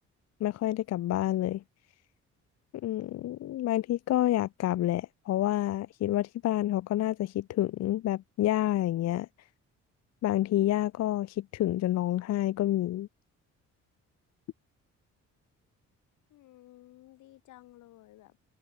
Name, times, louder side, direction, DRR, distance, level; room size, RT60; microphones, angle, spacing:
voice 1, 0.4-1.6 2.8-9.3 10.2-13.1, left 14 dB, 60° left, 0.5 m, -28 dB
voice 2, 16.3-18.4, left 15 dB, 80° left, 1.3 m, -54 dB
cardioid pair, 90°, 30 cm